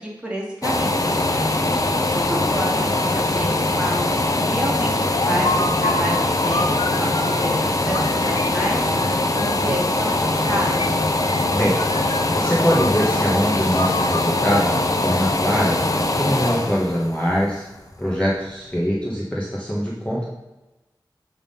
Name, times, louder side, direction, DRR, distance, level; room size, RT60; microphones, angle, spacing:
voice 1, 0.0-11.0, equal, 10° right, -4 dB, 2.4 m, -30 dB
sound 1, 0.6-18.3 18.8-18.9, left 2 dB, 45° left, 0.7 m, -22 dB
sound 2, 4.7-7.5 7.9-9.7 10.4-11.5 11.8-13.2 13.7-15.5, left 2 dB, 85° left, 0.6 m, -30 dB
voice 2, 11.5-17.7 18.0-20.3, equal, 15° left, -5 dB, 1.4 m, -23 dB
8.4 x 3.7 x 5.4 m, 1.0 s
wide cardioid pair, 65°, 8 cm